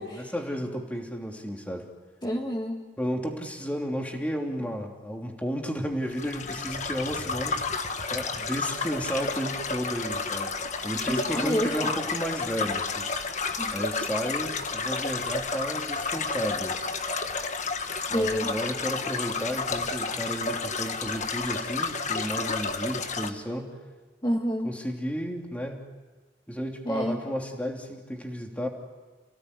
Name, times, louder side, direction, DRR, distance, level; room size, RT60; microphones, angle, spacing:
voice 1, 0.0-1.9 3.0-7.6 8.1-10.5 10.8-13.1 13.7-16.8 18.1-23.7 24.6-25.8 26.5-28.7, equal, 10° left, 1 dB, 3.1 m, -33 dB
voice 2, 2.2-2.8 11.0-11.9 13.6-13.8 18.1-18.5 24.2-24.7 26.9-27.2, equal, 25° left, 0 dB, 1.9 m, -28 dB
sound 1, 6.1-23.3, left 4 dB, 45° left, 1.5 m, -31 dB
29.5 x 17.5 x 9.7 m, 1.3 s
head